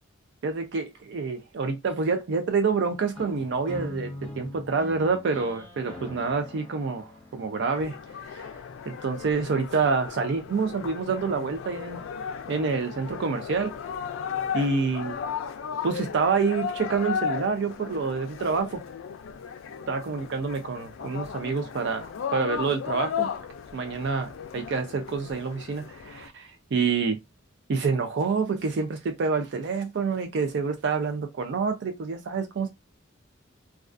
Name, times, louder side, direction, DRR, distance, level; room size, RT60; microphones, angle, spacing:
voice 1, 0.4-4.1 4.4-8.5 8.9-12.0 12.5-13.7 14.5-15.1 15.8-18.8 19.9-23.3 23.7-27.2 27.7-32.7, right 4 dB, 60° right, 0.4 m, -27 dB
sound 1, 3.1-9.1, left 1 dB, 5° left, 0.8 m, -42 dB
sound 2, 7.7-26.3, left 7 dB, 75° left, 0.3 m, -35 dB
2.3 x 2.3 x 2.4 m
head